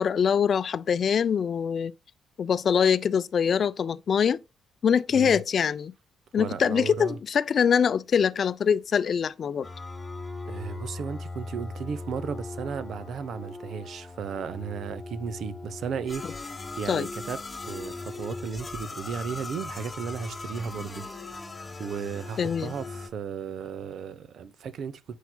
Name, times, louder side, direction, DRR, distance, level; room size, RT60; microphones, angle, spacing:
voice 1, 0.0-1.9 2.4-4.4 4.8-5.9 6.3-9.7 16.9-17.1 22.4-22.7, left 7 dB, 50° left, 0.4 m, -24 dB
voice 2, 6.4-7.2 10.4-21.1 21.8-25.2, right 6 dB, 65° right, 0.8 m, -35 dB
sound 1, 9.6-23.1, left 3 dB, 25° left, 1.5 m, -39 dB
8.1 x 5.9 x 2.3 m
cardioid pair, 90°, 0 cm